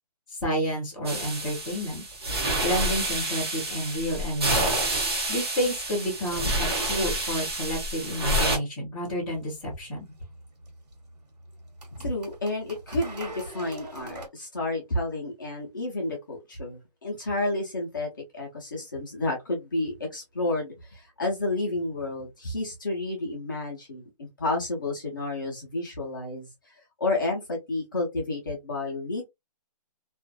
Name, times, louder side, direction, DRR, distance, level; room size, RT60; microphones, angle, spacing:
voice 1, 0.3-2.0 2.6-4.8 5.3-10.0, equal, ahead, 0.8 m, -30 dB
sound 1, 1.0-8.6, right 1 dB, 40° right, 1.0 m, -28 dB
sound 2, 9.0-14.3, right 2 dB, 85° right, 1.4 m, -45 dB
voice 2, 12.0-18.1 18.3-29.3, left 2 dB, 30° left, 0.7 m, -31 dB
2.5 x 2.3 x 2.2 m
hypercardioid pair, 180°, 20 cm